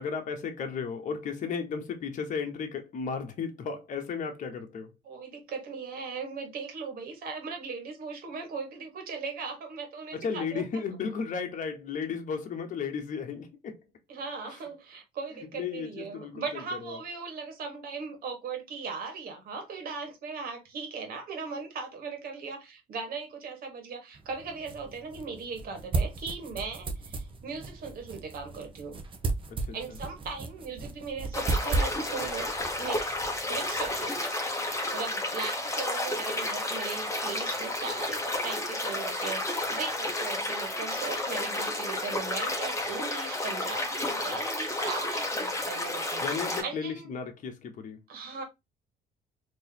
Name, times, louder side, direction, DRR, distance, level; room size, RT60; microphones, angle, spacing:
voice 1, 0.0-4.9 10.1-13.8 15.5-17.0 29.5-29.7 46.2-48.0, left 6 dB, 50° left, 1.0 m, -34 dB
voice 2, 5.0-10.6 14.1-29.0 29.7-47.1 48.1-48.4, right 5 dB, 60° right, 1.5 m, -38 dB
sound 1, 24.1-34.1, right 3 dB, 30° right, 0.8 m, -35 dB
sound 2, 31.3-46.6, left 1 dB, 20° left, 1.2 m, -31 dB
3.8 x 3.0 x 2.8 m
cardioid pair, 110°, 17 cm